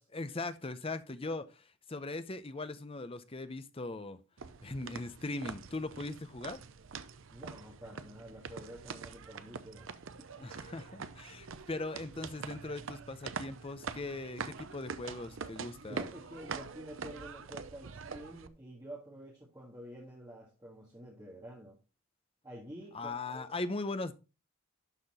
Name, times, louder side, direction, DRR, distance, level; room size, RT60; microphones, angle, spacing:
voice 1, 0.1-4.2 4.6-6.6 10.4-16.1 22.9-24.1, left 2 dB, 25° left, 0.7 m, -39 dB
sound 1, 4.4-18.5, right 5 dB, 65° right, 0.6 m, -44 dB
voice 2, 7.3-9.9 15.9-21.8 22.4-23.5, right 1 dB, 15° right, 1.7 m, -49 dB
12.0 x 4.3 x 4.2 m
head